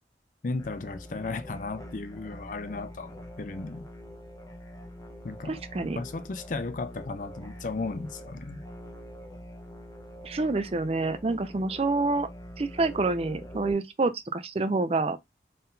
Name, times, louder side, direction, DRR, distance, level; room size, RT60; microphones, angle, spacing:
voice 1, 0.4-3.8 5.2-5.6 5.9-8.6, left 3 dB, 45° left, 0.4 m, -35 dB
sound 1, 0.6-13.7, equal, 20° left, 0.9 m, -44 dB
voice 2, 5.5-6.0 10.2-12.3 12.6-15.2, right 3 dB, 35° right, 0.4 m, -27 dB
3.8 x 3.7 x 2.6 m
head